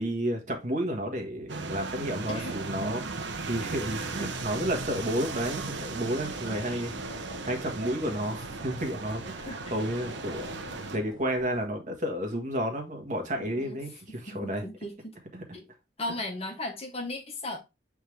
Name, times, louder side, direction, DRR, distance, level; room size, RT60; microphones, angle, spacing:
voice 1, 0.0-14.6 15.3-15.4, equal, 45° right, 1.5 m, -32 dB
sound 1, 1.5-11.0, right 3 dB, 90° right, 1.0 m, -37 dB
voice 2, 2.3-2.6 9.5-9.7 13.4-13.8 14.3-15.2 15.5-15.7 16.0-17.6, left 1 dB, 35° left, 1.3 m, -36 dB
sound 2, 4.0-11.7, left 2 dB, 90° left, 1.3 m, -48 dB
7.8 x 3.7 x 3.3 m
head